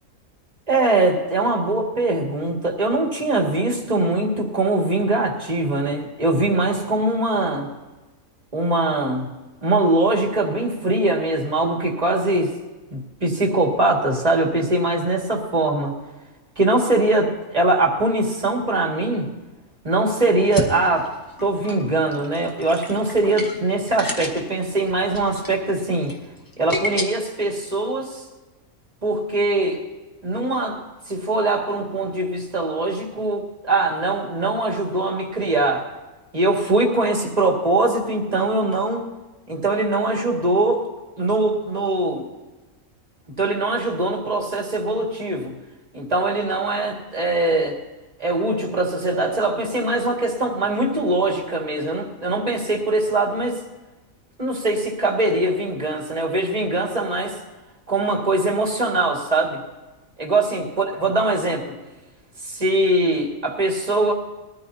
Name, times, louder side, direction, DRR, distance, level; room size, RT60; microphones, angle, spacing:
voice 1, 0.7-7.7 8.5-9.3 9.6-12.5 12.9-15.9 16.6-19.3 19.8-21.1 21.4-26.1 26.6-28.2 29.0-29.8 30.2-30.8 31.1-35.9 36.3-39.0 39.5-40.8 41.2-42.3 43.4-45.5 45.9-47.8 48.2-53.6 54.4-57.4 57.9-59.6 60.2-61.7 62.5-64.1, right 2 dB, 30° right, -1 dB, 2.2 m, -22 dB
sound 1, 20.4-27.0, left 1 dB, 15° left, 1.3 m, -31 dB
21.5 x 13.5 x 2.8 m, 1.1 s
omnidirectional pair, 1.5 m